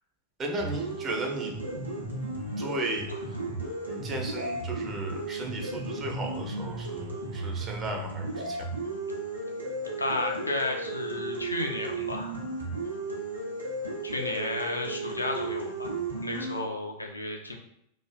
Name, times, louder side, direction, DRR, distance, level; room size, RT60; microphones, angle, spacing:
voice 1, 0.4-1.6 2.6-3.1 3.9-8.7, right 2 dB, 25° right, 1 dB, 0.5 m, -35 dB
sound 1, 0.6-16.6, right 2 dB, 85° right, 0.6 m, -34 dB
voice 2, 10.0-12.4 14.0-17.5, left 2 dB, 80° left, 2 dB, 0.4 m, -33 dB
2.4 x 2.4 x 2.3 m, 0.76 s
figure-of-eight pair, 90°, 0 cm